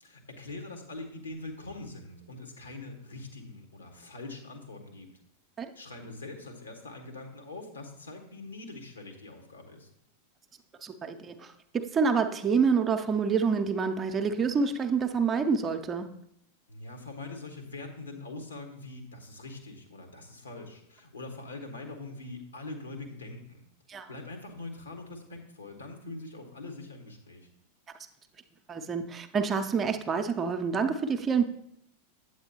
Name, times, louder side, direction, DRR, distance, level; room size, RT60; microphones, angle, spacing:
voice 1, 0.0-5.1 5.7-9.9 16.7-23.6 24.1-27.5, left 2 dB, 75° left, 4 dB, 1.4 m, -43 dB
voice 2, 10.8-16.1 23.9-24.1 28.7-31.4, right 5 dB, 20° right, 7 dB, 0.5 m, -27 dB
8.6 x 8.1 x 2.8 m, 0.74 s
figure-of-eight pair, 90°, 0 cm